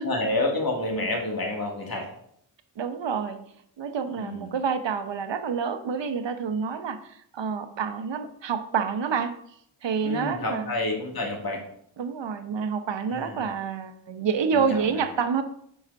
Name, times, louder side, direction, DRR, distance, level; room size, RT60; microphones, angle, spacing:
voice 1, 0.0-2.1 4.2-4.5 10.0-11.6 13.1-13.5 14.5-15.0, left 2 dB, 50° left, 1 dB, 2.0 m, -29 dB
voice 2, 2.8-3.4 3.8-9.3 9.8-10.7 12.0-15.4, right 6 dB, 65° right, 9 dB, 0.9 m, -28 dB
5.8 x 4.9 x 5.3 m, 0.70 s
cardioid pair, 45°, 46 cm